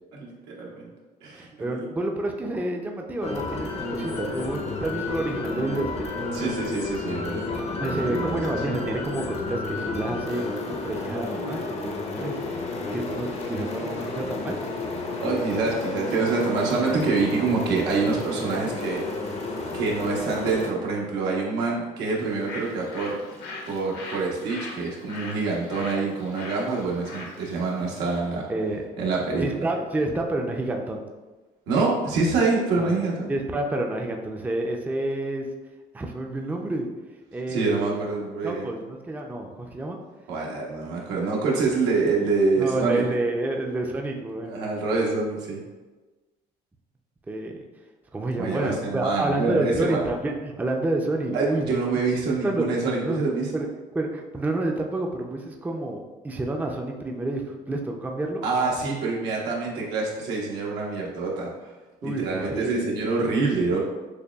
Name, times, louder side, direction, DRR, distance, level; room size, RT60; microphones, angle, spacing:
voice 1, 0.1-0.9 1.2-1.8 6.3-8.4 15.2-19.1 19.5-23.2 23.6-28.5 29.0-29.7 31.7-33.3 37.5-38.7 40.3-43.0 44.5-45.6 48.4-50.0 51.3-53.5 58.4-61.7 62.0-63.8, right 4 dB, 85° right, -3 dB, 1.0 m, -26 dB
voice 2, 1.3-6.5 7.8-12.4 12.9-14.6 28.5-28.8 29.4-31.0 32.8-32.9 33.3-35.5 35.9-36.9 37.3-38.0 38.4-40.0 41.2-41.3 42.6-44.7 47.3-47.5 48.1-51.6 52.4-52.7 53.0-53.2 53.5-53.7 53.9-58.4 62.0-62.9, right 2 dB, 10° right, 2 dB, 0.4 m, -29 dB
sound 1, 3.2-20.7, left 3 dB, 40° left, 0.5 m, -31 dB
Bird, 22.1-28.3, left 2 dB, 80° left, 1.0 m, -41 dB
6.5 x 2.3 x 2.3 m, 1.2 s
cardioid pair, 110°, 17 cm